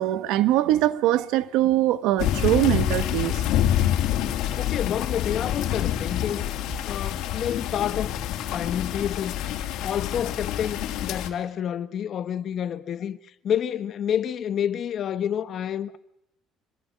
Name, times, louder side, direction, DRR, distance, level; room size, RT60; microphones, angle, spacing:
voice 1, 0.0-3.4, right 14 dB, 80° right, 1.2 m, -22 dB
sound 1, 2.2-11.3, left 11 dB, 75° left, 2.9 m, -27 dB
voice 2, 4.6-6.4 6.9-9.3 9.8-16.0, left 9 dB, 50° left, 1.3 m, -29 dB
25.5 x 21.5 x 6.6 m
cardioid pair, 120°, 0 cm